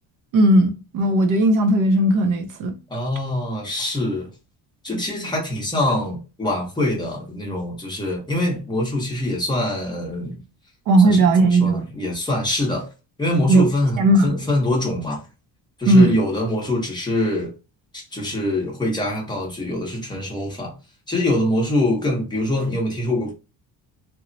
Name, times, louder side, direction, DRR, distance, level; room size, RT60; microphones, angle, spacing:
voice 1, 0.3-2.7 10.9-11.8 13.5-13.7 14.0-14.4 15.9-16.1, right 2 dB, 55° right, 0.5 m, -16 dB
voice 2, 2.9-4.3 4.8-10.4 11.0-12.9 13.2-15.2 15.8-17.5 17.9-20.7 21.1-23.3, left 1 dB, 10° left, 0.7 m, -24 dB
2.9 x 2.0 x 2.5 m
cardioid pair, 175°, 38 cm